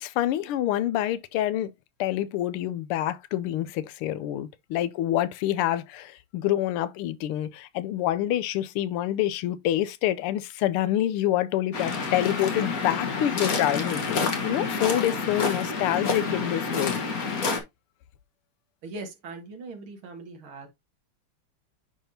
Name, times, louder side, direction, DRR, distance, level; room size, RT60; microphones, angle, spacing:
voice 1, 0.0-1.7 2.0-17.0, left 13 dB, 80° left, 1.5 m, -27 dB
Waves surf, 11.7-17.6, left 4 dB, 45° left, 1.5 m, -28 dB
voice 2, 18.8-20.7, right 3 dB, 70° right, 2.3 m, -40 dB
10.0 x 3.6 x 2.7 m
omnidirectional pair, 2.4 m